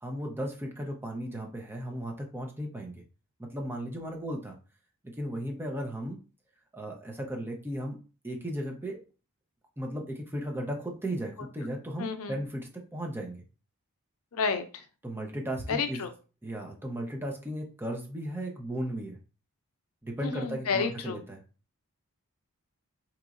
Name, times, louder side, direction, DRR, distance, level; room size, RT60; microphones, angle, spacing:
voice 1, 0.0-3.0 3.4-4.6 5.0-6.2 6.7-8.0 8.2-9.0 9.8-13.4 15.0-16.1 16.4-19.2 20.0-21.4, right 1 dB, 10° right, 1 dB, 0.6 m, -36 dB
voice 2, 12.0-12.4 14.3-14.8 15.7-16.1 20.2-21.2, left 5 dB, 70° left, 8 dB, 0.5 m, -31 dB
3.8 x 3.0 x 2.4 m, 0.34 s
head